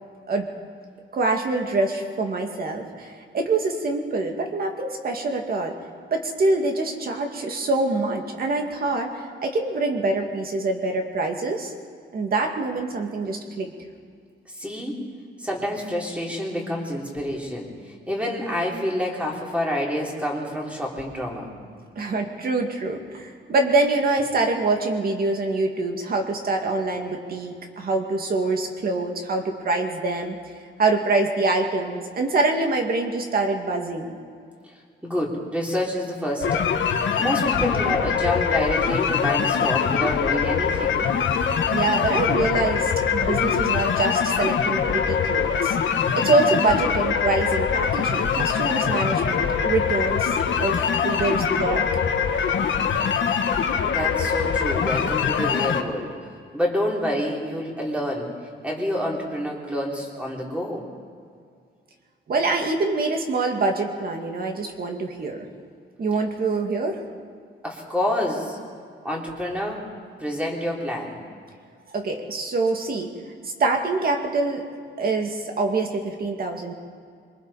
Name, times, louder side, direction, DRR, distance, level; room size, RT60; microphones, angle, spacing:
voice 1, 1.1-5.7 6.1-11.7 12.1-13.7 22.0-30.4 30.8-34.2 41.7-45.8 46.1-51.9 62.3-65.5 66.0-67.0 71.9-73.1 73.6-74.6 75.0-76.7, right 3 dB, 50° right, 3 dB, 2.3 m, -25 dB
voice 2, 14.5-15.0 15.4-17.7 18.1-21.5 35.0-36.7 37.2-41.0 50.4-50.5 53.9-56.1 56.5-58.3 58.6-60.8 67.6-68.6 69.0-69.8 70.2-71.2, equal, 5° right, -2 dB, 3.4 m, -27 dB
sound 1, 36.4-55.8, left 7 dB, 80° left, 1.4 m, -23 dB
26.0 x 24.0 x 4.3 m, 2.1 s
wide cardioid pair, 175°, 19 cm